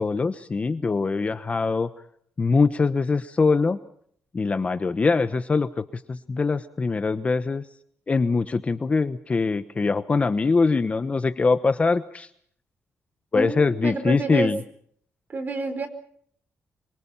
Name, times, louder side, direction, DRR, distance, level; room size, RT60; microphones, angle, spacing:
voice 1, 0.0-1.9 2.4-3.8 4.3-7.6 8.1-12.3 13.3-14.6, left 4 dB, 25° left, 11 dB, 1.1 m, -23 dB
voice 2, 13.3-14.5 15.3-15.9, right 3 dB, 35° right, 9 dB, 4.7 m, -28 dB
27.0 x 24.0 x 5.7 m, 0.63 s
wide cardioid pair, 150°, 5 cm